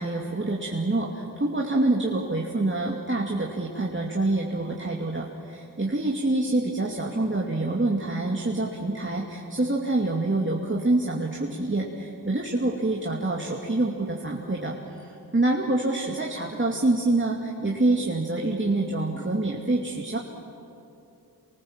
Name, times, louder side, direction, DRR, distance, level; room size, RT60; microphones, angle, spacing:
voice 1, 0.0-20.2, right 2 dB, 30° right, -2 dB, 2.5 m, -26 dB
28.0 x 24.0 x 7.5 m, 2.8 s
cardioid pair, 45°, 41 cm